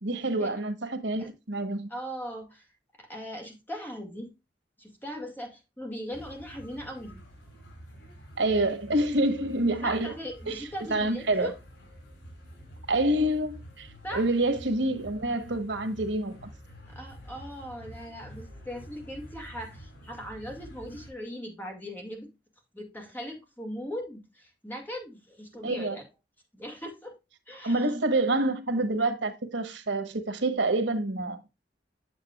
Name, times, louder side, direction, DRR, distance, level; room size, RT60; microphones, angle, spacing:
voice 1, 0.0-1.9 8.4-10.1 10.5-11.5 12.9-16.5 25.6-26.0 27.6-31.4, right 2 dB, 90° right, 1.2 m, -27 dB
voice 2, 1.9-2.7 3.0-4.3 4.8-7.2 9.8-11.5 14.0-14.3 16.9-22.3 22.7-26.0 26.5-27.2 27.5-27.9, equal, 10° left, 2.2 m, -39 dB
sound 1, 6.1-21.1, equal, 90° left, 5.1 m, -48 dB
8.9 x 7.0 x 2.4 m
head